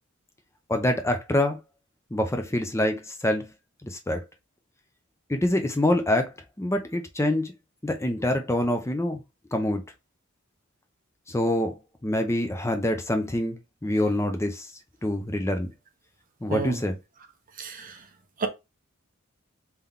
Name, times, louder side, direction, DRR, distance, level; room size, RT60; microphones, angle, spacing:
voice 1, 0.7-1.6 2.1-3.5 3.8-4.2 5.3-7.5 7.8-9.2 9.5-9.8 11.3-11.7 12.0-14.7 15.0-15.7 16.4-16.9, left 1 dB, 15° left, 0.6 m, -25 dB
voice 2, 16.5-16.8 17.6-18.1 18.4-18.5, right 3 dB, 40° right, 0.9 m, -31 dB
3.8 x 2.9 x 3.5 m
head